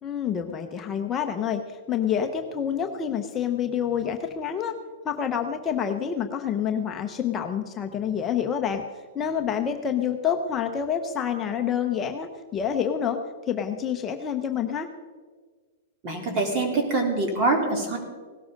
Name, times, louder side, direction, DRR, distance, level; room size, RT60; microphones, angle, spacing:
voice 1, 0.0-4.7 5.0-8.8 9.1-14.9, left 8 dB, 20° left, 4 dB, 0.9 m, -27 dB
voice 2, 16.0-18.0, right 2 dB, 35° right, 2 dB, 3.8 m, -24 dB
17.5 x 12.5 x 5.3 m, 1.5 s
hypercardioid pair, 150°, 0 cm